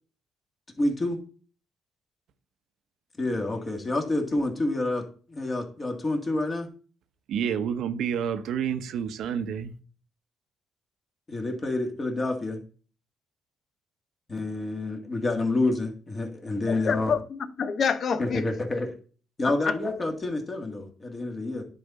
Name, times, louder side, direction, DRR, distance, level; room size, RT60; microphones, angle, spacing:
voice 1, 0.8-1.2 3.2-6.7 11.3-12.6 14.3-17.1 18.2-18.9 19.4-21.6, left 2 dB, 30° left, 2.0 m, -28 dB
voice 2, 7.3-9.7, right 8 dB, 80° right, 0.8 m, -29 dB
voice 3, 16.7-18.5 19.4-19.7, left 6 dB, 55° left, 0.8 m, -27 dB
9.9 x 4.3 x 4.0 m
cardioid pair, 90°, 0 cm